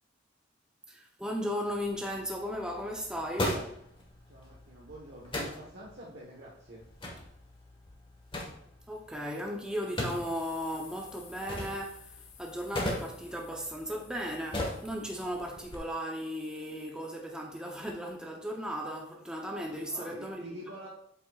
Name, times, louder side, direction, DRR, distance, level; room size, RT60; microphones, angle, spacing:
voice 1, 0.9-3.6 8.9-20.6, equal, 5° right, 0.7 m, -36 dB
sound 1, 1.7-15.8, left 1 dB, 25° left, 1.5 m, -40 dB
voice 2, 4.3-6.8 19.8-20.9, right 1 dB, 60° right, 1.3 m, -47 dB
sound 2, 9.8-16.0, left 7 dB, 60° left, 1.2 m, -55 dB
8.3 x 7.9 x 2.4 m
head